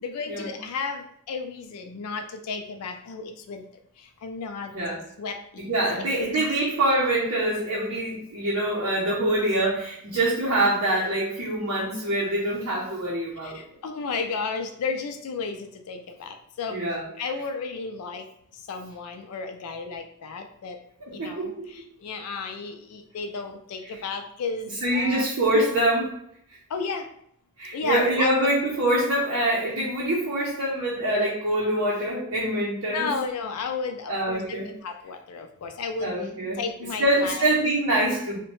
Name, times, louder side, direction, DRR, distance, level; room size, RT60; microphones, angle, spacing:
voice 1, 0.0-3.6 4.2-4.7 5.2-5.6 5.9-6.8 13.4-16.8 17.2-18.3 18.7-20.8 21.1-25.3 26.7-27.0 27.7-28.5 32.8-36.1 36.6-37.5, left 4 dB, 80° left, 5 dB, 0.4 m, -33 dB
voice 2, 4.7-5.0 5.7-13.6 16.7-17.1 21.0-21.5 23.8-24.0 24.8-26.2 27.6-33.1 34.1-34.7 36.0-36.6 37.0-38.4, right 1 dB, 60° right, -6 dB, 0.7 m, -25 dB
2.7 x 2.1 x 3.0 m, 0.69 s
head